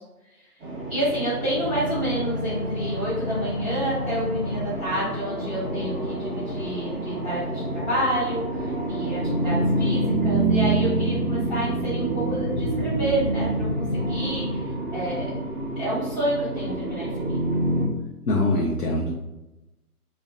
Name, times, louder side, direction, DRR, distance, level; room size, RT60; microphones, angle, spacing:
sound 1, 0.6-17.9, right 1 dB, 15° right, 0.9 m, -27 dB
voice 1, 0.9-15.3 15.8-17.4, equal, 20° left, -15 dB, 0.7 m, -29 dB
voice 2, 18.3-19.1, left 2 dB, 70° left, -1 dB, 0.7 m, -23 dB
2.3 x 2.2 x 3.7 m, 0.97 s
hypercardioid pair, 145°, 46 cm